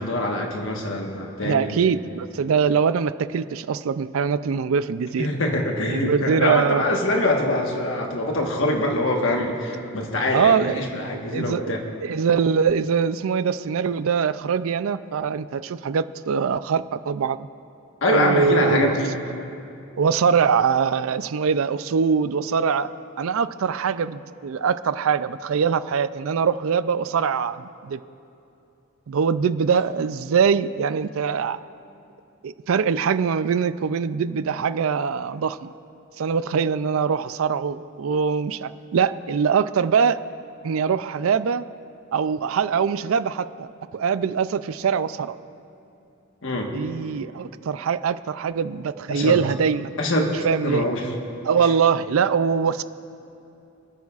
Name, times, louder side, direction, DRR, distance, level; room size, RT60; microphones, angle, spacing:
voice 1, 0.0-1.9 5.2-11.8 18.0-19.1 46.4-46.7 49.1-49.4 50.0-50.4 50.6-51.1, left 1 dB, 65° left, 1 dB, 1.4 m, -24 dB
voice 2, 1.4-5.3 5.9-6.8 10.3-10.9 11.3-11.6 12.0-17.4 18.1-19.0 20.0-22.9 23.2-28.0 29.1-31.6 32.4-35.7 36.2-40.2 40.6-41.6 42.1-45.4 46.7-50.0 50.4-50.9 51.4-52.8, right 6 dB, 75° right, 14 dB, 0.4 m, -23 dB
27.0 x 9.4 x 2.4 m, 2.8 s
head